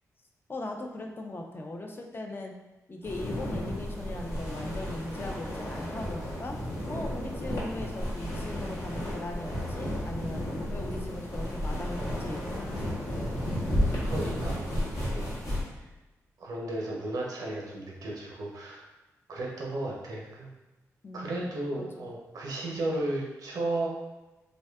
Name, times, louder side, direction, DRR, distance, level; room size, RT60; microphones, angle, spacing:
voice 1, 0.5-2.5 2.9-6.6 6.9-10.4 10.7-13.5 21.0-21.9, left 2 dB, 35° left, 2 dB, 0.4 m, -39 dB
sound 1, 3.0-15.6, equal, 70° left, 0.9 m, -33 dB
voice 2, 14.0-14.7 15.1-15.3 16.4-18.8 19.3-20.5 21.1-23.9, right 2 dB, 75° right, -2 dB, 0.6 m, -34 dB
2.6 x 2.2 x 2.2 m, 1.1 s
cardioid pair, 55°, 6 cm